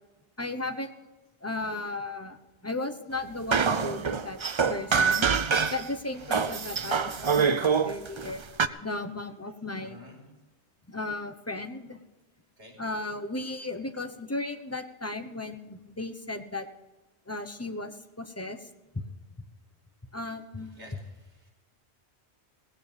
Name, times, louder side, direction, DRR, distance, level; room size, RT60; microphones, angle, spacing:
voice 1, 0.4-0.9 1.4-2.4 2.6-4.4 4.7-5.3 5.7-8.4 8.8-10.0 10.9-12.0 12.8-16.6 17.3-18.6 20.1-21.0, left 2 dB, 15° left, 6 dB, 0.9 m, -35 dB
sound 1, 3.5-5.9 6.3-8.7, right 6 dB, 40° right, 0.4 m, -25 dB
voice 2, 6.6-7.1 9.8-10.3 12.6-12.8 20.6-21.5, left 2 dB, 75° right, 0 dB, 5.1 m, -51 dB
18.0 x 16.5 x 3.5 m, 1.2 s
omnidirectional pair, 1.2 m